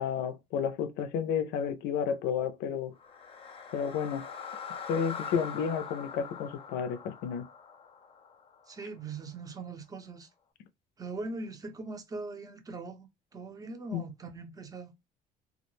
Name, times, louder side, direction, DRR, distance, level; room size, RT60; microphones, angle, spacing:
voice 1, 0.0-2.9 3.7-4.3 4.9-7.5 13.9-14.0, left 7 dB, 90° left, 0.4 m, -31 dB
sound 1, 2.9-9.1, left 6 dB, 35° left, 0.5 m, -43 dB
voice 2, 8.7-10.3 11.0-14.9, right 3 dB, 20° right, 0.6 m, -41 dB
2.3 x 2.1 x 2.9 m
cardioid pair, 110°, 17 cm